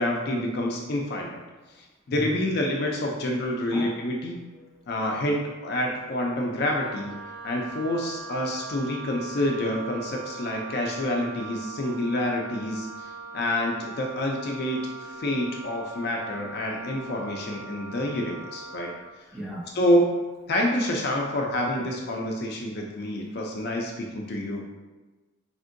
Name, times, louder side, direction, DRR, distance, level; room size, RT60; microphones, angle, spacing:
voice 1, 0.0-1.4 1.8-4.4 4.9-14.8 15.2-18.9 19.7-20.2 20.5-24.6, left 1 dB, 50° left, 0 dB, 0.4 m, -27 dB
voice 2, 3.7-4.0 4.5-5.1 7.6-7.7 19.3-19.7 21.8-21.9, equal, ahead, -7 dB, 0.6 m, -38 dB
Wind instrument woodwind instrument, 6.5-19.0, right 4 dB, 85° right, 1.3 m, -41 dB
3.5 x 2.6 x 2.5 m, 1.2 s
head